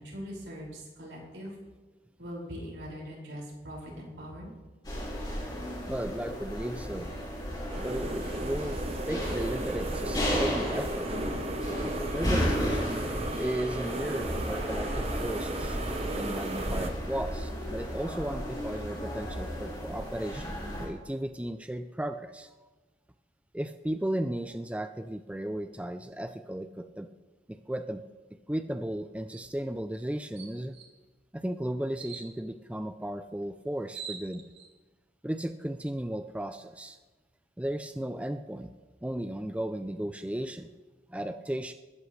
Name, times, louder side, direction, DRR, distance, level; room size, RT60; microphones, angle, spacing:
voice 1, 0.0-1.6 2.2-4.5, equal, 85° right, -4 dB, 5.6 m, -41 dB
sound 1, 4.8-20.9, equal, 25° left, 4.6 m, -34 dB
voice 2, 5.9-7.1 7.8-8.8 9.1-11.1 11.8-13.1 13.4-22.5 23.5-27.1 27.5-28.0 28.5-30.7 31.3-34.4 35.2-37.0 37.6-38.7 39.0-40.7 41.1-41.7, right 1 dB, 5° right, 9 dB, 0.4 m, -35 dB
sound 2, 7.7-16.9, right 2 dB, 35° right, 1.0 m, -35 dB
sound 3, 29.3-29.5 29.9-30.0 30.4-30.9 31.9-32.3 33.4-33.5 33.7-34.7, right 7 dB, 65° right, 2.4 m, -43 dB
21.0 x 13.0 x 3.3 m, 1.3 s
head